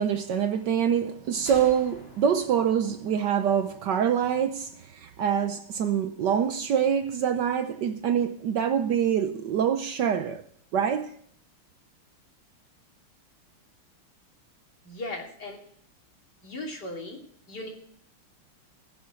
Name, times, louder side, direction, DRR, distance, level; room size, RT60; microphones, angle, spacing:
voice 1, 0.0-10.5 10.7-11.2, right 8 dB, 65° right, 1.2 m, -25 dB
sound 1, 1.5-5.0, left 2 dB, 30° left, 1.9 m, -49 dB
voice 2, 14.8-15.6 16.4-17.2 17.5-17.7, left 2 dB, 50° left, 3.4 m, -37 dB
19.5 x 7.2 x 5.1 m
omnidirectional pair, 2.3 m